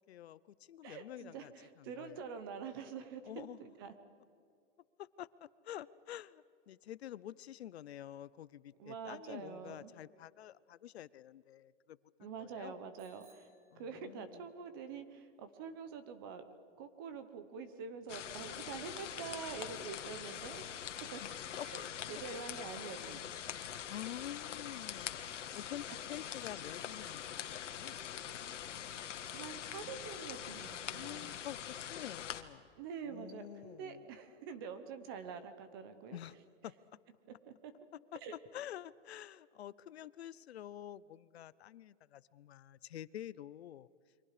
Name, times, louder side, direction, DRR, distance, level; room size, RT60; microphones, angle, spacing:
voice 1, 0.1-1.5 1.8-2.3 3.3-3.6 5.0-12.0 12.4-12.7 13.7-14.4 21.2-21.9 23.0-23.2 23.9-25.3 25.5-28.0 30.9-32.7 33.1-34.0 36.1-36.3 36.6-36.7 38.5-43.9, left 11 dB, 60° left, 19 dB, 0.7 m, -48 dB
voice 2, 0.8-3.9 8.8-9.9 12.2-13.5 13.7-16.4 16.8-20.7 21.1-21.2 21.6-23.3 28.6-28.8 29.3-31.4 32.8-36.2 37.5-37.7 38.2-38.3, right 6 dB, 20° right, 10 dB, 0.8 m, -46 dB
Bicycle bell, 13.0-14.5, right 4 dB, 80° right, 5.5 m, -68 dB
sound 1, 18.1-32.4, left 9 dB, 80° left, 1.7 m, -44 dB
29.5 x 24.0 x 5.0 m, 2.4 s
supercardioid pair, 180°, 36 cm